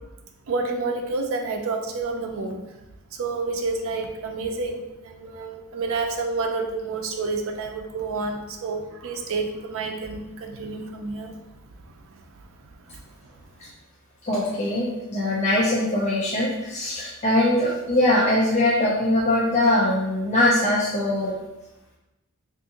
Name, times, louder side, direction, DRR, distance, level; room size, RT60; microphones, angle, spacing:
voice 1, 0.5-2.6 3.2-11.3, right 3 dB, 60° right, 3 dB, 0.5 m, -29 dB
voice 2, 14.2-21.3, left 1 dB, 30° left, -5 dB, 0.4 m, -22 dB
3.5 x 2.5 x 2.8 m, 0.97 s
head